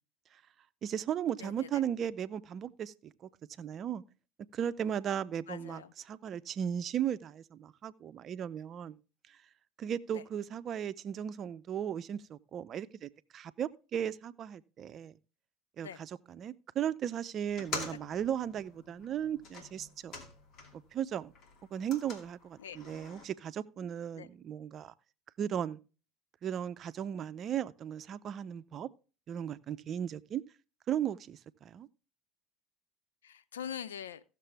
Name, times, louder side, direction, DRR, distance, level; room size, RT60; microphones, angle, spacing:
voice 1, 0.8-3.1 3.6-4.0 4.5-9.0 9.8-15.1 15.8-20.2 20.7-21.3 21.7-24.9 25.4-25.8 26.4-28.9 29.3-30.4 30.9-31.9, right 9 dB, 45° right, 0.6 m, -36 dB
voice 2, 1.4-1.8 5.5-5.9 10.1-10.2 15.8-16.0 22.6-22.8 24.1-24.3 33.2-34.2, left 9 dB, 85° left, 0.5 m, -43 dB
sound 1, 17.5-20.9 21.2-23.2, left 3 dB, 55° left, 2.6 m, -45 dB
15.5 x 6.7 x 3.4 m
hypercardioid pair, 75°, 0 cm